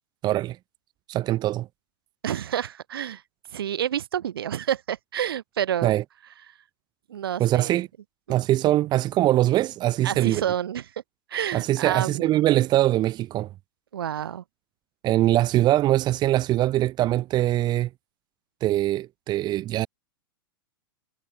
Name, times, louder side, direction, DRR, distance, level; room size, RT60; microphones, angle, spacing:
voice 1, 0.2-0.6 1.1-1.7 5.8-6.0 7.4-7.9 8.3-10.4 11.5-13.5 15.0-17.9 18.6-19.9, right 14 dB, 35° right, 3.4 m, -22 dB
voice 2, 2.2-3.2 3.5-5.9 7.1-7.8 10.0-10.8 11.3-12.4 13.9-14.4, right 10 dB, 75° right, 4.7 m, -29 dB
hypercardioid pair, 110°, 12 cm